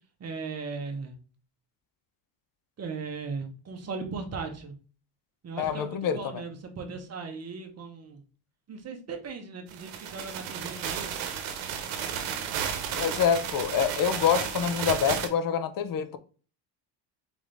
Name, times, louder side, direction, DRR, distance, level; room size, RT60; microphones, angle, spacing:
voice 1, 0.2-1.2 2.8-4.7 5.4-8.2 8.7-11.3, right 4 dB, 35° right, 1.1 m, -37 dB
voice 2, 5.6-6.4 13.0-16.2, left 7 dB, 45° left, 0.7 m, -26 dB
sound 1, 9.7-15.3, right 8 dB, 85° right, 1.0 m, -33 dB
3.9 x 3.8 x 3.4 m
cardioid pair, 115°, 46 cm